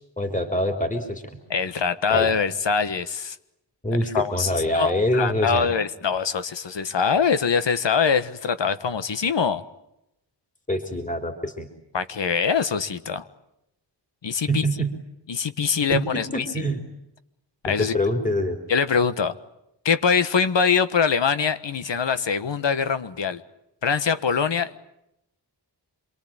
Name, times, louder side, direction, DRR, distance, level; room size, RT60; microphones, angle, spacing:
voice 1, 0.2-1.4 2.1-2.3 3.8-5.7 10.7-11.7 14.5-14.9 15.9-16.8 17.8-18.6, equal, 20° left, 5 dB, 3.6 m, -25 dB
voice 2, 1.5-3.4 4.1-9.6 11.9-13.2 14.2-14.6 15.3-16.6 17.6-17.9 18.7-19.3 19.8-23.4 23.8-24.8, left 6 dB, 90° left, 12 dB, 1.5 m, -23 dB
27.0 x 23.0 x 8.8 m, 0.83 s
wide cardioid pair, 120°, 42 cm